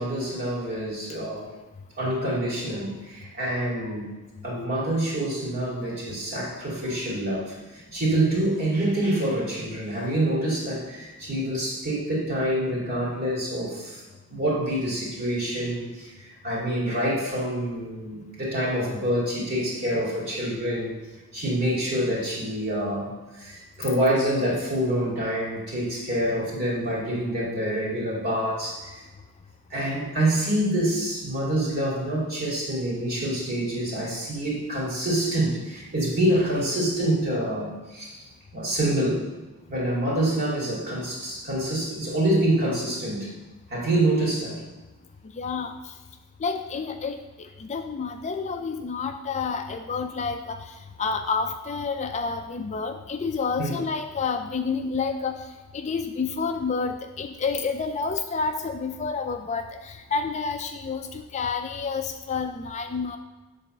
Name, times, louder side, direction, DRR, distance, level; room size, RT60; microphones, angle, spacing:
voice 1, 0.0-1.5 2.0-4.1 4.4-7.6 7.9-14.0 14.3-20.9 21.3-29.0 29.7-38.2 38.5-39.2 39.7-43.3 43.7-44.6 53.6-53.8, right 1 dB, 45° right, -5 dB, 2.7 m, -26 dB
voice 2, 45.4-45.7 46.4-47.2 47.6-50.6 51.0-55.4 55.7-63.2, left 5 dB, 30° left, 6 dB, 0.4 m, -29 dB
7.7 x 4.1 x 6.5 m, 1.2 s
head